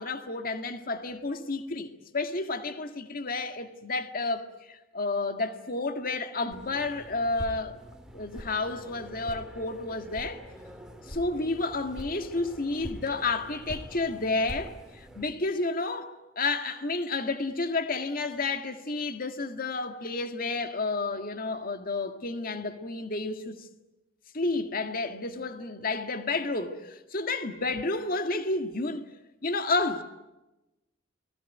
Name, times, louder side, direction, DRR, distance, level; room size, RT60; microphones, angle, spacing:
voice 1, 0.0-7.8 8.1-10.4 11.1-23.7 24.3-29.1 29.4-30.0, left 3 dB, 50° left, 1.9 m, -31 dB
sound 1, 6.5-15.2, equal, 5° right, 2.7 m, -44 dB
29.5 x 21.0 x 9.3 m
head